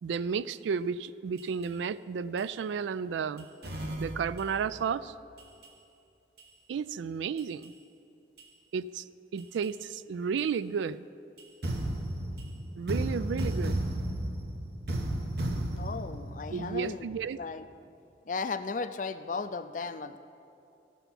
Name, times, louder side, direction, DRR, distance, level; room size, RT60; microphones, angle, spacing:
voice 1, 0.0-3.5 4.0-5.1 6.7-7.7 8.7-9.0 9.3-11.0 12.8-13.8 16.5-17.4, right 6 dB, 85° right, 16 dB, 0.3 m, -32 dB
sound 1, 1.4-1.7 2.4-2.5 3.4-4.7 5.4-5.7 6.4-6.5 7.4-7.7 8.4-8.5 9.4-9.7 10.4-10.5 11.4-17.2, right 1 dB, 60° right, 1.1 m, -34 dB
voice 2, 15.7-17.1 17.4-17.7 18.3-20.2, left 4 dB, 45° left, 11 dB, 0.4 m, -35 dB
14.5 x 6.8 x 5.9 m, 2.6 s
head